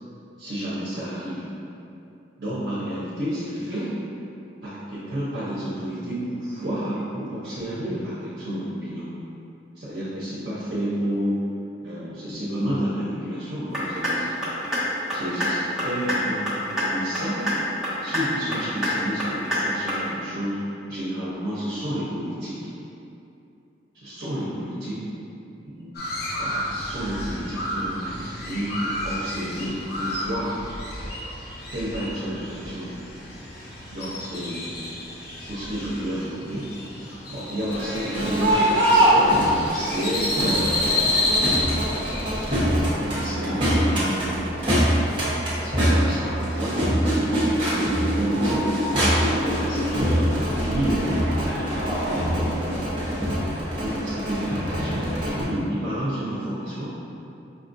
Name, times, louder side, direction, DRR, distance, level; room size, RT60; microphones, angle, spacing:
voice 1, 0.4-1.4 2.4-3.9 4.6-9.1 9.8-11.4 11.8-14.3 15.1-17.4 18.0-20.6 20.9-22.6 24.0-25.0 25.7-25.9 26.4-30.5 31.7-33.3 33.9-34.7 35.4-36.7 37.3-39.3 39.7-41.1 42.8-44.9 45.6-47.1 48.0-50.1 50.6-51.4 52.1-52.8 53.8-57.0, equal, 60° right, -10 dB, 0.8 m, -30 dB
sound 1, 13.7-14.1 14.4-14.8 15.1-15.5 15.8-16.2 16.5-16.8 17.1-17.6 17.8-18.2 18.5-18.9 19.2-19.6 19.9-20.0, equal, 5° right, 0.8 m, -26 dB
Crow, 25.9-42.5, left 2 dB, 55° left, 0.7 m, -30 dB
Crowd, 37.7-55.4, equal, 30° right, 0.9 m, -23 dB
5.4 x 2.4 x 2.6 m, 2.7 s
head